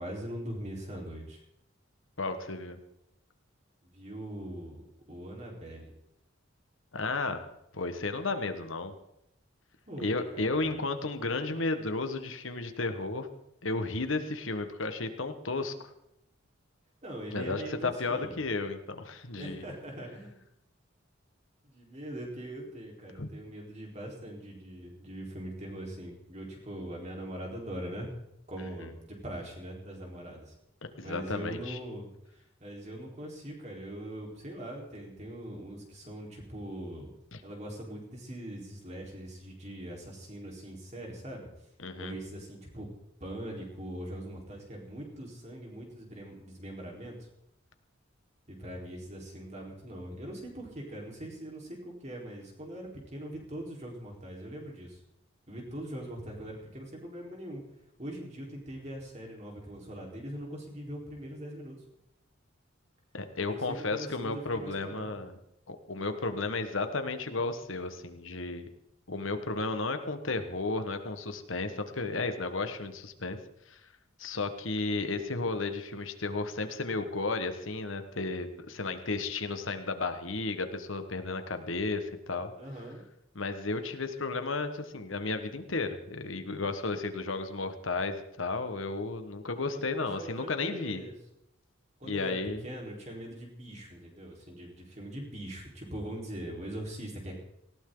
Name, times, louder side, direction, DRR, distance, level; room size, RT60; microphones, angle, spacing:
voice 1, 0.0-1.4 3.9-4.8 5.1-5.9 9.9-10.7 17.0-18.4 19.4-20.4 21.6-28.1 28.5-30.5 31.0-37.1 37.4-41.5 42.0-42.9 43.2-47.3 48.5-55.0 55.5-57.6 58.0-61.7 63.4-65.1 82.6-83.0 89.5-91.1 92.0-97.4, right 1 dB, 35° right, 0 dB, 4.3 m, -42 dB
voice 2, 2.2-2.8 6.9-7.4 7.7-8.9 10.0-13.3 13.6-15.7 17.3-19.6 23.2-23.3 31.0-31.8 37.3-37.4 41.8-42.1 63.1-65.4 65.7-68.7 69.1-73.4 73.7-73.8 74.2-82.5 83.3-91.0 92.0-92.6, left 3 dB, 80° left, 8 dB, 1.5 m, -33 dB
19.0 x 17.0 x 3.9 m, 0.81 s
head